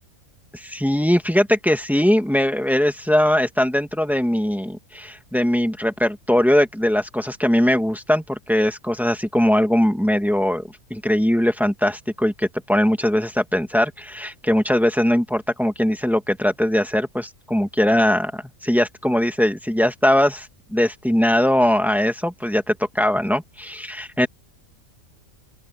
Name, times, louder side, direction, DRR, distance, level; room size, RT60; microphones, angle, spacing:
voice 1, 0.5-10.6 10.9-24.3, left 1 dB, ahead, 1.9 m, -20 dB
open air
omnidirectional pair, 1.5 m